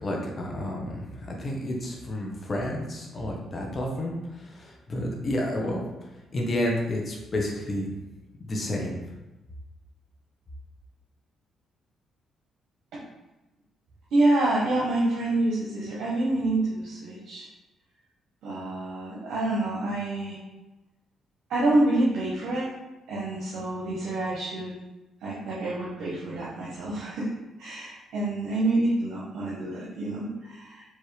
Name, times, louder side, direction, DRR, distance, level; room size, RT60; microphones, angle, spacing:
voice 1, 0.0-5.8 6.3-7.9 8.4-9.0, left 1 dB, 40° left, 0 dB, 0.9 m, -30 dB
voice 2, 14.1-17.5 18.4-20.4 21.5-22.7 23.1-24.7 25.2-27.3 27.6-30.8, right 2 dB, 80° right, -7 dB, 0.9 m, -27 dB
4.6 x 2.7 x 3.2 m, 1.0 s
cardioid pair, 90°, 0 cm